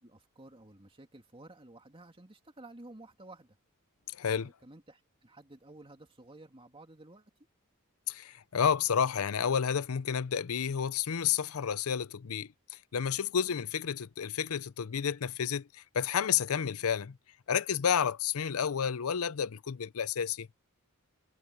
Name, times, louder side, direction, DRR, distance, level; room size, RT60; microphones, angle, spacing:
voice 1, 0.0-3.6 4.3-7.3 13.5-13.6, right 2 dB, 25° right, 2.6 m, -53 dB
voice 2, 4.1-4.5 8.1-17.2 17.5-20.5, left 7 dB, 70° left, 0.6 m, -31 dB
head